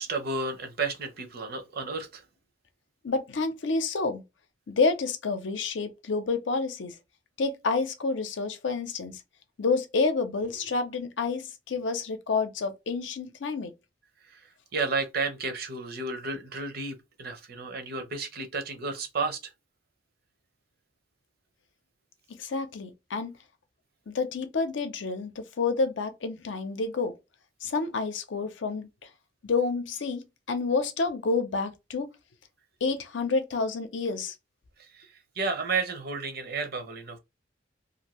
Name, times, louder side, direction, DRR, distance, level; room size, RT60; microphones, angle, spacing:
voice 1, 0.0-2.2 14.3-14.4 14.7-19.5 34.9-35.1 35.4-37.2, right 4 dB, 55° right, 0.7 m, -32 dB
voice 2, 3.0-4.2 4.7-7.0 7.4-9.2 9.6-13.7 22.4-23.3 24.1-27.1 27.6-28.9 29.4-32.1 32.8-34.3, left 4 dB, 85° left, 0.6 m, -29 dB
2.6 x 2.6 x 2.9 m
head